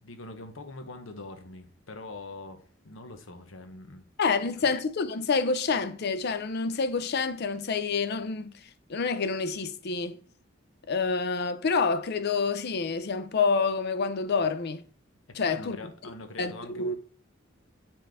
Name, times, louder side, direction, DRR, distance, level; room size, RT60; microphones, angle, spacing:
voice 1, 0.0-4.1 4.6-4.7 15.4-16.9, left 2 dB, 75° left, 1.0 m, -43 dB
voice 2, 4.2-8.5 8.9-10.2 10.9-14.8 15.4-15.8 16.4-16.9, left 4 dB, 55° left, 0.5 m, -28 dB
7.7 x 4.3 x 3.5 m
head